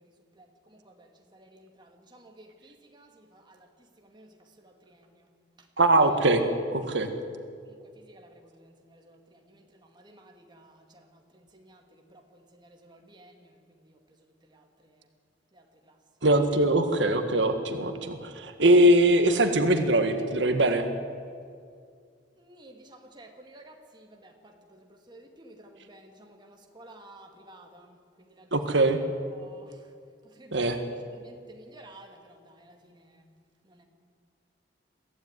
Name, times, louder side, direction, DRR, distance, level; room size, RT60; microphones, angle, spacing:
voice 1, 0.9-3.7 4.0-4.3 4.6-5.3 6.0-6.1 8.0-11.8 12.1-13.5 14.5-14.9 15.5-15.9 22.4-28.5 29.3-29.7 30.4-30.9 31.1-33.3 33.7-33.8, right 1 dB, 25° right, 2 dB, 2.2 m, -53 dB
voice 2, 5.8-6.4 6.7-7.1 16.2-20.8 28.5-29.0 30.5-30.8, right 1 dB, 75° right, 7 dB, 1.7 m, -22 dB
22.5 x 15.5 x 9.6 m, 2.3 s
head